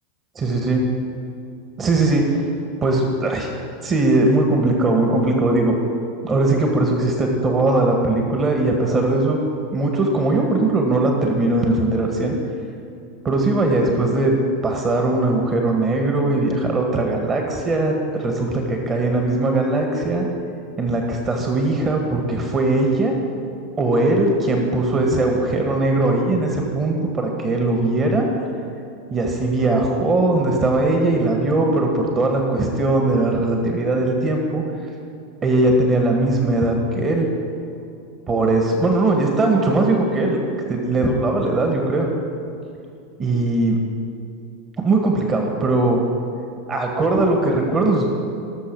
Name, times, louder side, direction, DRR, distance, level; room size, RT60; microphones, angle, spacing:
voice 1, 0.4-0.8 1.8-2.2 2.8-3.5 3.8-5.8 6.2-9.4 9.7-12.4 13.2-14.3 14.6-20.3 20.8-23.2 23.8-28.3 29.1-34.6 35.4-37.3 38.3-40.4 40.7-42.1 43.2-43.8 44.8-46.0 46.7-48.1, right 2 dB, 30° right, 2 dB, 1.8 m, -20 dB
19.0 x 6.7 x 4.8 m, 2.5 s
figure-of-eight pair, 85°, 0 cm